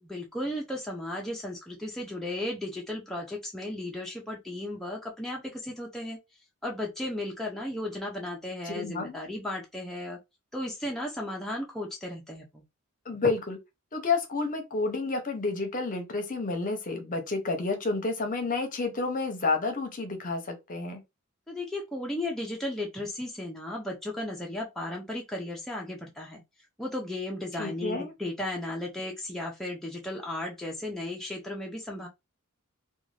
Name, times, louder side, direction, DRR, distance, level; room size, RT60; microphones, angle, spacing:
voice 1, 0.0-6.2 6.6-10.2 10.5-12.6 21.5-26.4 26.8-32.1, left 1 dB, ahead, 0.5 m, -35 dB
voice 2, 8.7-9.2 13.1-13.6 13.9-21.0 27.6-28.1, left 3 dB, 40° left, 0.7 m, -30 dB
2.5 x 2.3 x 3.1 m
head